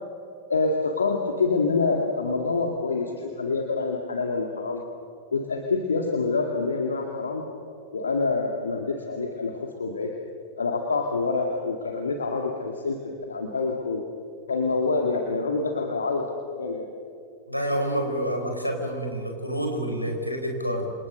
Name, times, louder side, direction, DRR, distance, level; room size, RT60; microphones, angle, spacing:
voice 1, 0.5-4.8 5.3-7.4 7.9-10.1 10.6-14.0 14.5-16.3 16.6-16.9, left 4 dB, 70° left, 3 dB, 2.2 m, -26 dB
voice 2, 17.5-20.9, equal, 90° left, 2 dB, 4.9 m, -28 dB
28.5 x 28.0 x 6.6 m, 2.4 s
figure-of-eight pair, 90°, 0 cm